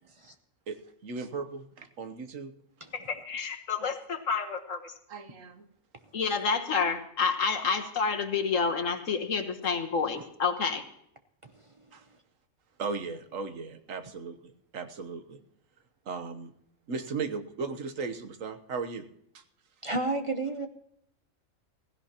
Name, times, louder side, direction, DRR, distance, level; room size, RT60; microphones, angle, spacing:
voice 1, 0.7-2.5 3.8-3.9 5.1-5.7 11.9-12.0 12.8-15.4 16.1-16.5 16.9-19.0 19.3-19.4, right 4 dB, 75° right, 9 dB, 1.4 m, -37 dB
voice 2, 2.9-4.9 6.1-10.8, left 5 dB, 70° left, 6 dB, 1.7 m, -29 dB
voice 3, 19.8-20.7, right 2 dB, 30° right, 7 dB, 0.7 m, -31 dB
16.0 x 16.0 x 2.9 m, 0.73 s
omnidirectional pair, 1.4 m